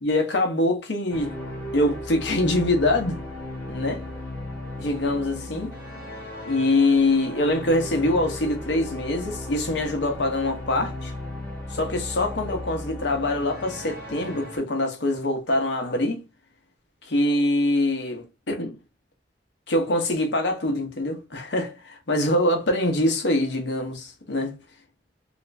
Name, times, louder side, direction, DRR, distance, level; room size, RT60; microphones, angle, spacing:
voice 1, 0.0-1.3 1.7-3.2 3.7-4.0 4.8-5.7 6.5-11.1 11.7-16.2 17.0-18.7 19.7-24.5, left 1 dB, 75° left, 0.9 m, -24 dB
sound 1, 1.1-14.6, left 1 dB, 10° left, 1.3 m, -36 dB
2.9 x 2.5 x 3.2 m
head